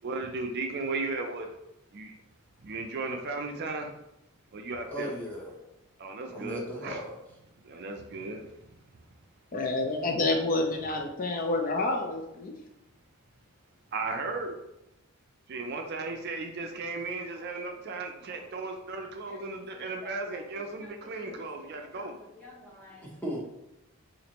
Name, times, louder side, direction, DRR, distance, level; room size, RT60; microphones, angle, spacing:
voice 1, 0.0-1.6 1.9-2.1 2.6-3.9 4.5-5.1 6.0-7.0 7.6-8.7 13.9-14.6 15.5-22.2, right 3 dB, 50° right, 4 dB, 0.4 m, -35 dB
voice 2, 4.9-5.6 6.3-7.1 15.7-15.8 17.3-17.7 18.3-18.6 19.3-19.4 19.8-20.4 20.8-20.9 21.2-22.1 22.4-23.4, equal, 5° left, -3 dB, 0.8 m, -40 dB
voice 3, 9.5-12.5, left 2 dB, 40° left, 3 dB, 0.4 m, -28 dB
4.2 x 2.5 x 2.9 m, 0.87 s
head